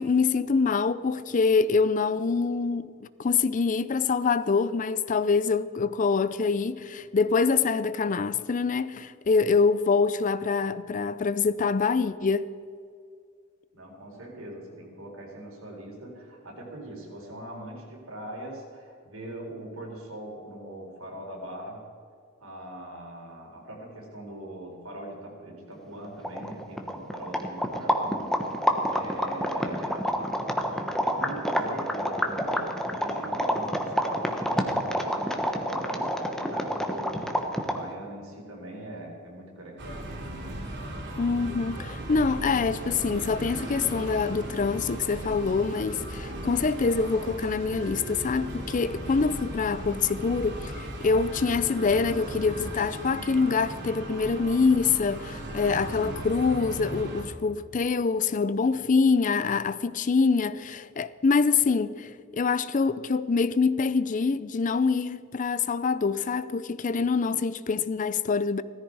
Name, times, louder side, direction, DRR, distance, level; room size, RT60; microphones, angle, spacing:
voice 1, 0.0-12.5 41.2-68.6, left 4 dB, 40° left, 0.5 m, -25 dB
voice 2, 13.7-21.8 22.4-28.2 28.9-30.4 31.1-40.5, right 1 dB, 85° right, 4.4 m, -41 dB
sound 1, 25.9-26.0 26.2-37.9, equal, ahead, 1.2 m, -28 dB
sound 2, 39.8-57.2, right 1 dB, 60° right, 2.5 m, -37 dB
17.0 x 14.5 x 4.7 m
head